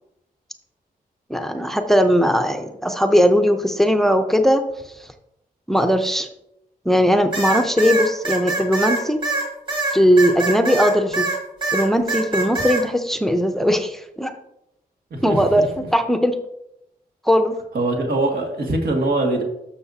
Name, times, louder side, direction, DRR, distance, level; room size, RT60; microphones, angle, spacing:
voice 1, 1.3-4.6 5.7-6.3 6.9-9.2 9.9-11.3 11.7-14.3 15.2-16.4 17.2-17.5, equal, ahead, 6 dB, 0.6 m, -18 dB
sound 1, 7.3-11.4 11.6-12.8, right 2 dB, 35° right, 2.8 m, -23 dB
voice 2, 15.1-15.7 17.7-19.4, right 2 dB, 80° right, 1 dB, 2.1 m, -22 dB
12.5 x 6.5 x 2.8 m, 0.83 s
wide cardioid pair, 165°, 16 cm